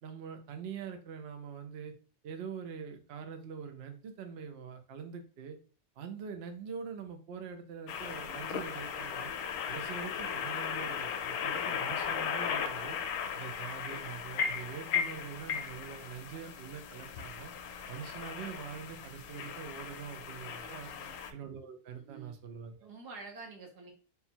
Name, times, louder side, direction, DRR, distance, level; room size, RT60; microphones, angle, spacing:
voice 1, 0.0-1.9 2.2-5.6 6.0-9.3 9.7-13.0 13.3-17.5 17.9-20.9 21.3-22.9, right 6 dB, 55° right, 5 dB, 0.7 m, -44 dB
sound 1, 7.9-21.3, left 7 dB, 75° left, 1.0 m, -37 dB
voice 2, 20.4-21.2 22.0-22.3 22.8-23.9, right 4 dB, 85° right, 1 dB, 1.7 m, -49 dB
3.6 x 2.3 x 4.3 m, 0.38 s
omnidirectional pair, 1.7 m